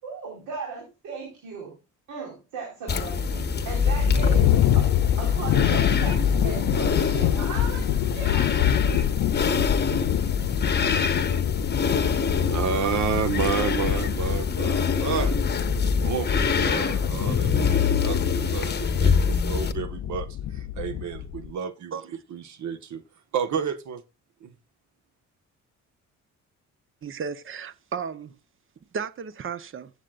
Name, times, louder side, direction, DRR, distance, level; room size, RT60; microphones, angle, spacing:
voice 1, 0.0-1.8 2.1-4.9 5.2-8.6, right 4 dB, 90° right, 4.5 m, -36 dB
sound 1, 2.9-19.7, left 5 dB, 35° left, 1.3 m, -25 dB
sound 2, 3.5-21.5, left 12 dB, 75° left, 0.6 m, -27 dB
voice 2, 12.3-15.3 16.0-18.7 19.0-20.3 20.8-21.9 22.3-23.0 23.3-24.0 24.4-24.5, right 7 dB, 70° right, 1.6 m, -30 dB
voice 3, 27.0-28.4 28.9-29.9, right 6 dB, 45° right, 1.0 m, -34 dB
15.5 x 8.4 x 2.5 m
cardioid pair, 90°, 30 cm